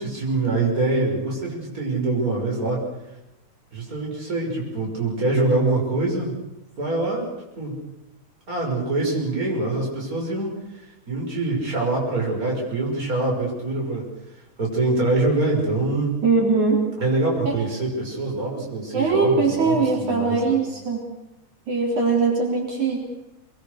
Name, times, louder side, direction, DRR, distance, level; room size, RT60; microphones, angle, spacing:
voice 1, 0.0-2.8 3.7-6.3 6.8-7.3 7.6-7.8 8.5-14.1 14.6-16.1 17.0-20.5, right 2 dB, 25° right, -2 dB, 6.2 m, -24 dB
voice 2, 16.2-16.8 17.5-17.6 18.9-21.0 21.7-23.0, right 4 dB, 70° right, -1 dB, 5.3 m, -21 dB
24.5 x 21.0 x 6.7 m, 0.98 s
omnidirectional pair, 3.5 m